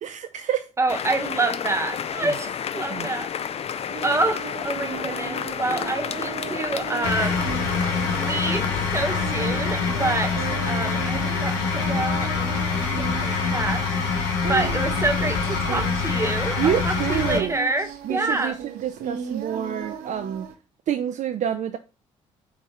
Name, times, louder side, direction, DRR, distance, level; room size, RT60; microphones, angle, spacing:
voice 1, 0.0-0.7 2.2-2.3 2.9-3.1 14.4-14.7 16.6-17.5 18.0-20.5 20.9-21.8, right 10 dB, 55° right, 0.4 m, -27 dB
voice 2, 0.8-3.3 4.0-7.4 8.1-13.8 14.5-18.6, right 2 dB, 15° right, 1.0 m, -27 dB
sound 1, 0.9-15.5, left 8 dB, 40° left, 0.4 m, -33 dB
Singing, 3.9-20.5, right 8 dB, 70° right, 0.7 m, -37 dB
sound 2, 7.0-17.4, left 5 dB, 85° left, 1.0 m, -25 dB
4.5 x 3.5 x 2.9 m
hypercardioid pair, 55°, 15 cm